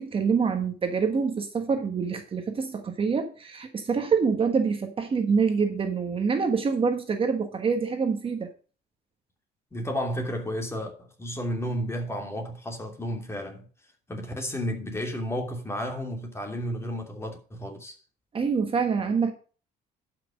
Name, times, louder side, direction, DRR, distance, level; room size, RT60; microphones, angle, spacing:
voice 1, 0.0-8.5 18.3-19.3, right 5 dB, 30° right, 1.4 m, -26 dB
voice 2, 9.7-13.6 14.1-17.9, equal, 15° left, 2.9 m, -32 dB
11.5 x 6.1 x 5.1 m
cardioid pair, 110°, 17 cm